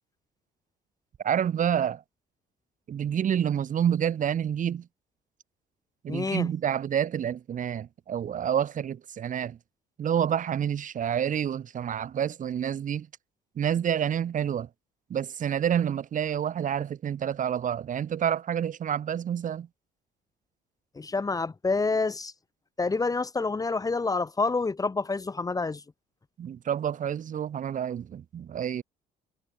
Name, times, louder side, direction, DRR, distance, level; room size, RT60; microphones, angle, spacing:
voice 1, 1.2-2.0 2.9-4.9 6.0-9.6 10.0-13.1 13.6-14.7 15.1-19.7 26.4-28.8, right 9 dB, 50° right, 7.7 m, -28 dB
voice 2, 6.1-6.5 21.0-22.3 22.8-25.8, left 3 dB, 20° left, 3.5 m, -28 dB
cardioid pair, 110°, 17 cm